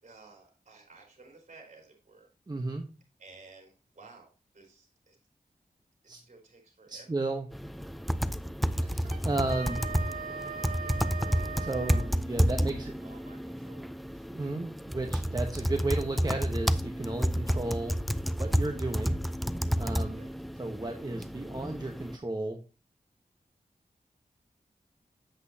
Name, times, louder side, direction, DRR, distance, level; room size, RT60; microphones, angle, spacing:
voice 1, 0.0-2.3 3.2-5.2 6.1-7.2 8.7-9.1 12.5-14.2 17.4-17.7 20.1-20.3, right 3 dB, 55° right, 1 dB, 4.5 m, -55 dB
voice 2, 2.5-2.8 6.1-6.2 6.9-7.5 8.8-9.8 11.6-12.9 14.3-18.0 18.4-19.2 19.8-20.2 20.6-22.6, right 2 dB, 30° right, 3 dB, 1.0 m, -33 dB
sound 1, 7.5-22.2, equal, ahead, 0.4 m, -31 dB
Wind instrument woodwind instrument, 9.0-12.1, right 5 dB, 85° right, 1.2 m, -39 dB
8.5 x 7.6 x 2.7 m, 0.32 s
wide cardioid pair, 75°, 15 cm